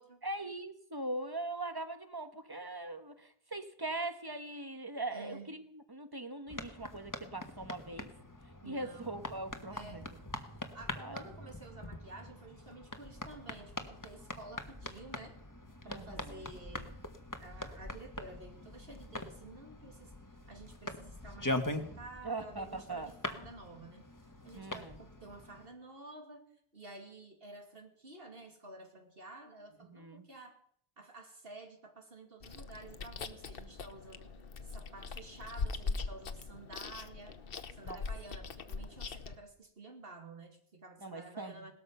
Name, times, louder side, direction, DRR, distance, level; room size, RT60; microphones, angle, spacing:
voice 1, 0.2-8.1 8.6-10.2 11.0-11.2 15.9-16.4 22.2-23.1 24.5-25.0 29.9-30.2 37.8-38.0 41.0-41.7, right 2 dB, 20° right, 9 dB, 1.3 m, -41 dB
voice 2, 5.1-5.5 8.6-9.2 9.7-10.1 10.7-15.4 15.8-17.1 17.4-20.1 20.5-24.1 24.4-26.5 26.7-30.6 31.0-34.3 34.6-37.4 37.7-41.7, right 2 dB, 65° right, 4 dB, 2.8 m, -51 dB
sound 1, 6.5-25.7, left 1 dB, 20° left, 1.4 m, -43 dB
Chewing mastication, 32.4-39.4, left 4 dB, 65° left, 1.2 m, -41 dB
18.5 x 13.5 x 5.6 m, 0.64 s
omnidirectional pair, 1.0 m